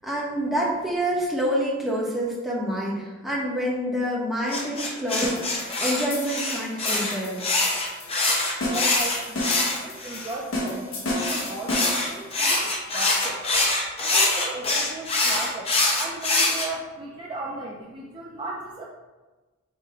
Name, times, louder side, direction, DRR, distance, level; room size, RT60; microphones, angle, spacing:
voice 1, 0.0-7.4, equal, ahead, -5 dB, 0.8 m, -27 dB
sound 1, 4.5-10.3 11.1-16.7, left 2 dB, 30° left, 0.6 m, -24 dB
sound 2, 5.2-12.3, left 1 dB, 80° left, 1.1 m, -32 dB
voice 2, 8.6-13.4 14.0-18.8, right 2 dB, 25° right, -3 dB, 0.3 m, -36 dB
4.9 x 2.1 x 4.5 m, 1.2 s
head